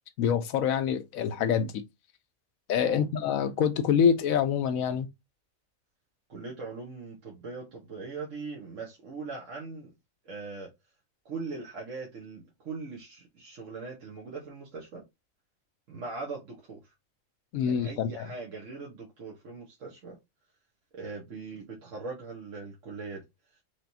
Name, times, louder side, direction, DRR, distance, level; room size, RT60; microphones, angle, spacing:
voice 1, 0.2-1.8 2.7-5.1 17.5-18.3, left 7 dB, 85° left, 1.1 m, -26 dB
voice 2, 6.3-9.9 10.2-10.7 11.2-15.1 15.9-16.8 17.6-20.2 20.9-23.2, right 4 dB, 65° right, 1.3 m, -40 dB
4.9 x 2.9 x 2.6 m
omnidirectional pair, 1.4 m